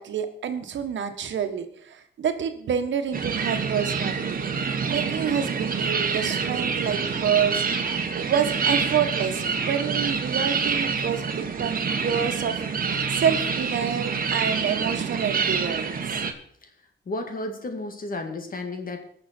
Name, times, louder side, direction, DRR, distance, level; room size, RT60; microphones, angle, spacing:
voice 1, 0.0-4.4 4.9-16.0, right 8 dB, 80° right, 7 dB, 1.4 m, -28 dB
Seagull and engine activity, 3.1-16.3, right 5 dB, 50° right, 1.4 m, -27 dB
voice 2, 17.1-19.0, left 2 dB, 50° left, 5 dB, 2.1 m, -32 dB
20.0 x 6.7 x 4.5 m, 0.65 s
cardioid pair, 85°, 19 cm